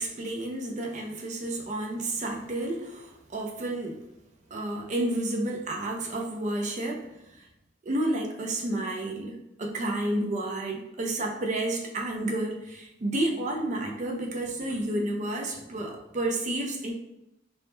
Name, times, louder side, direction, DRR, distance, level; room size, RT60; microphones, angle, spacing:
voice 1, 0.0-4.0 4.5-7.5 7.8-16.9, right 1 dB, 35° right, 1 dB, 0.4 m, -31 dB
2.1 x 2.0 x 2.9 m, 0.89 s
head